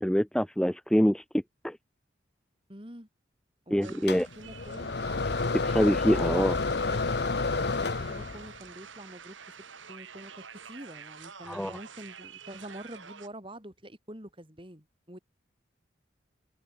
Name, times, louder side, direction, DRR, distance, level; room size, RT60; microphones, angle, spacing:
voice 1, 0.0-1.8 3.7-4.3 5.5-6.6 11.5-11.8, equal, 5° left, 0.4 m, -25 dB
voice 2, 2.7-3.1 3.7-5.0 7.6-9.5 9.9-15.2, right 1 dB, 25° right, 5.1 m, -46 dB
sound 1, 3.8-13.3, right 6 dB, 85° right, 3.4 m, -48 dB
sound 2, 4.1-8.6, left 3 dB, 60° left, 0.8 m, -30 dB
head